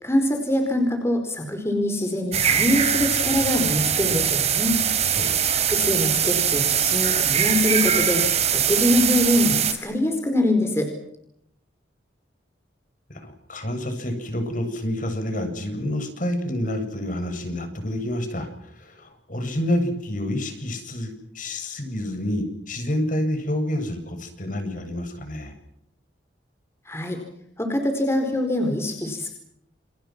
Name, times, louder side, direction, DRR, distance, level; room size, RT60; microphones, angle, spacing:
voice 1, 0.0-4.8 5.7-8.2 8.5-10.9 26.9-27.2 27.6-29.3, left 1 dB, 15° left, 4 dB, 4.7 m, -23 dB
sound 1, 2.3-9.7, right 8 dB, 35° right, 4.4 m, -22 dB
voice 2, 5.1-5.7 13.1-25.5, left 1 dB, 45° left, 6 dB, 7.7 m, -28 dB
29.5 x 29.5 x 6.1 m, 0.73 s
head